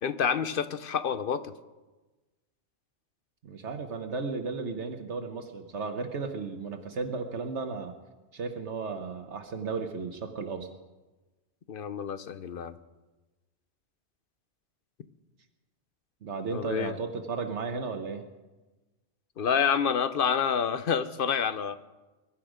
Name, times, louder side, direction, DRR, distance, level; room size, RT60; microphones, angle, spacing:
voice 1, 0.0-1.5 11.7-12.7 16.5-16.9 19.4-21.8, left 7 dB, 55° left, 13 dB, 0.8 m, -28 dB
voice 2, 3.4-7.9 8.3-10.7 16.2-18.2, right 4 dB, 70° right, 6 dB, 1.3 m, -34 dB
22.0 x 11.5 x 5.1 m, 1.2 s
omnidirectional pair, 1.2 m